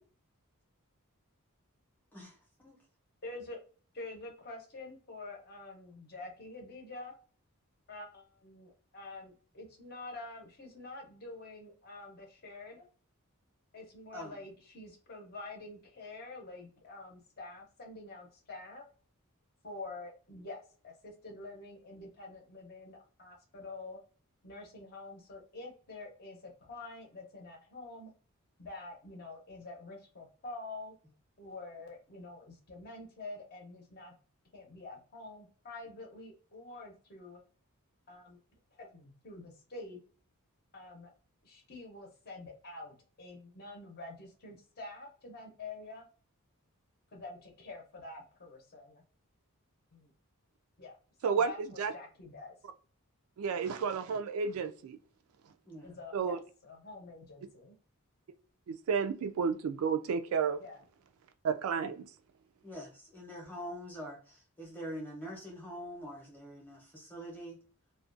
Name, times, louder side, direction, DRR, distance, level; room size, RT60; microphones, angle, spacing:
voice 1, 2.1-2.8 14.1-14.3 55.7-55.9 62.6-67.6, equal, 10° left, 0.7 m, -44 dB
voice 2, 3.2-3.6 3.9-7.1 7.9-12.9 13.7-18.8 19.6-24.0 24.4-28.1 28.6-30.9 31.4-34.1 34.5-37.4 38.1-38.4 38.7-40.0 40.7-41.1 41.4-46.1 47.1-49.0 49.9-50.1 50.8-51.0 51.3-52.5 55.8-57.8 60.6-60.8, left 2 dB, 45° left, 0.7 m, -47 dB
voice 3, 53.4-55.0 56.1-56.4 58.7-60.6 61.4-62.1, right 6 dB, 70° right, 0.3 m, -31 dB
2.3 x 2.2 x 2.5 m
head